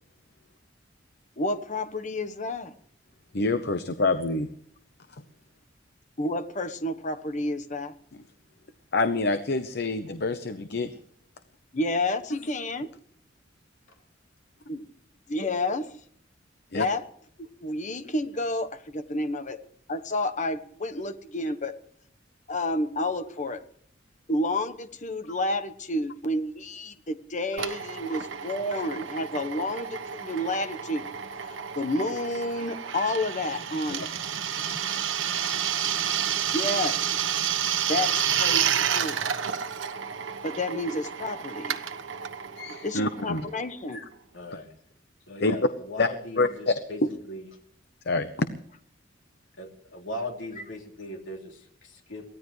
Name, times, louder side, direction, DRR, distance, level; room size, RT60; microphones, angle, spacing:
voice 1, 1.4-2.7 6.2-7.9 11.7-12.9 14.7-14.9 15.3-15.9 16.7-17.0 17.4-19.6 19.9-21.7 22.5-23.6 24.3-31.1 31.5-34.1 36.5-37.0 37.9-39.2 40.4-41.8 42.8-44.0, left 1 dB, 40° left, 9 dB, 1.2 m, -30 dB
voice 2, 3.3-4.5 5.1-5.2 8.9-10.9 12.3-12.4 16.7-16.9 36.5-36.7 42.6-43.4 43.9-44.0 45.4-45.6 46.0-46.1 46.4-46.7 48.1-48.5, left 3 dB, 60° left, 10 dB, 0.9 m, -26 dB
Drill, 27.6-43.9, right 9 dB, 90° right, 1.2 m, -30 dB
voice 3, 44.3-44.7 45.3-47.0 47.3-47.5 49.6-52.2, left 1 dB, 85° left, 2 dB, 3.2 m, -38 dB
23.5 x 16.5 x 3.3 m, 0.62 s
head